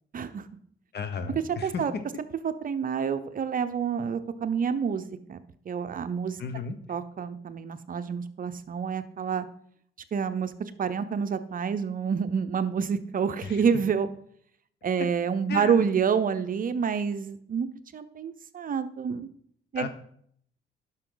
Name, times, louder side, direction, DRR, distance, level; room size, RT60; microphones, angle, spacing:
voice 1, 0.1-0.5 1.6-1.9 2.4-5.0 5.3-5.4 5.7-6.4 6.9-9.5 10.1-14.1 14.8-19.3 19.7-19.9, right 6 dB, 45° right, 11 dB, 0.7 m, -28 dB
voice 2, 0.9-1.8 6.4-6.8 13.4-13.6 15.5-15.9 19.7-19.9, left 6 dB, 55° left, 9 dB, 1.1 m, -34 dB
11.0 x 6.1 x 3.9 m, 0.65 s
cardioid pair, 90°, 20 cm